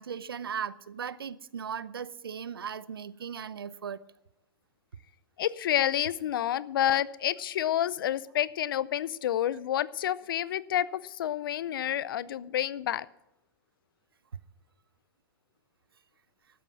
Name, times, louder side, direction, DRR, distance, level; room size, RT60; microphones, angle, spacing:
voice 1, 0.0-4.0, right 7 dB, 90° right, 0.7 m, -37 dB
voice 2, 5.4-13.1, left 11 dB, 75° left, 0.6 m, -29 dB
13.5 x 9.3 x 6.2 m
hypercardioid pair, 105°, 12 cm